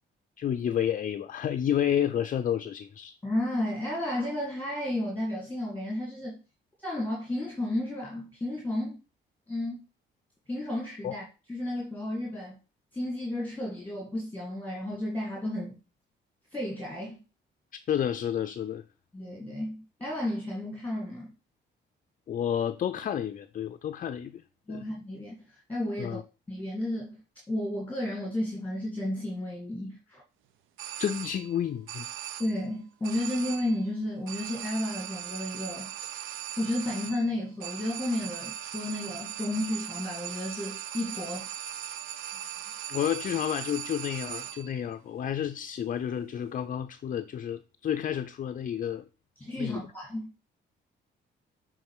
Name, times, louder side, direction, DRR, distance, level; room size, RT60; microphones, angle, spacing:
voice 1, 0.4-3.2 11.0-11.1 17.7-18.8 22.3-24.4 24.7-24.9 26.0-26.2 31.0-32.1 42.9-49.0 49.6-49.8, left 9 dB, 45° left, 0.4 m, -30 dB
voice 2, 3.2-6.4 6.8-9.0 9.5-9.8 10.5-12.6 12.9-15.8 16.5-17.2 19.1-21.3 24.7-26.2 26.5-27.2 27.5-30.2 32.4-36.2 36.6-41.5 49.4-50.5, left 1 dB, 10° left, 1.9 m, -33 dB
sound 1, 30.8-31.6 31.9-32.7 33.0-33.9 34.3-44.8, right 10 dB, 90° right, 0.5 m, -39 dB
6.5 x 3.8 x 4.7 m
cardioid pair, 90°, 20 cm